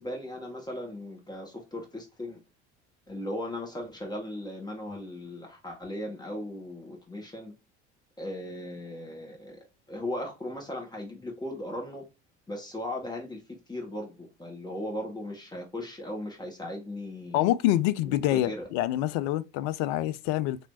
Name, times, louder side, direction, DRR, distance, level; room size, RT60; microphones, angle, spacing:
voice 1, 0.0-2.4 3.1-7.5 8.2-9.6 9.9-12.0 12.5-13.4 13.7-17.4 18.0-18.7, left 1 dB, 10° left, 1.5 m, -37 dB
voice 2, 17.3-20.6, left 14 dB, 55° left, 0.4 m, -26 dB
3.1 x 3.1 x 2.7 m
figure-of-eight pair, 65°, 36 cm